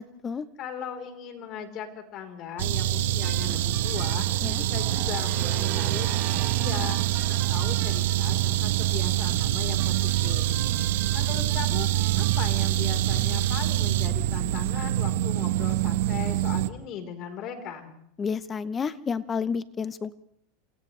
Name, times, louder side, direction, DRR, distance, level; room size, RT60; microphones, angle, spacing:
voice 1, 0.0-0.5 4.4-4.6 18.2-20.1, left 6 dB, 20° left, 15 dB, 0.8 m, -30 dB
voice 2, 0.6-4.3 4.6-7.0 7.3-10.5 11.1-11.9 12.2-17.9, left 8 dB, 40° left, 5 dB, 4.0 m, -38 dB
sound 1, 2.6-16.7, right 14 dB, 80° right, 1.0 m, -25 dB
sound 2, 3.2-13.6, right 13 dB, 50° right, 1.1 m, -40 dB
29.0 x 27.5 x 3.3 m, 0.71 s
supercardioid pair, 140°, 0 cm